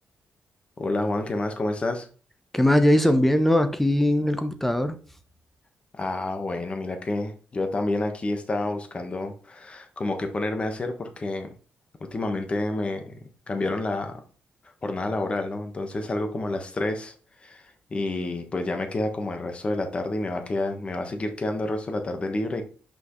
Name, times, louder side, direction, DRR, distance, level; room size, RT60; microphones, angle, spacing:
voice 1, 0.8-2.1 5.9-11.5 12.0-13.2 13.5-14.2 14.8-17.1 17.4-22.6, left 2 dB, 30° left, 1.3 m, -29 dB
voice 2, 2.5-5.0, left 1 dB, 5° left, 0.8 m, -20 dB
6.2 x 5.6 x 3.1 m
cardioid pair, 125°, 4 cm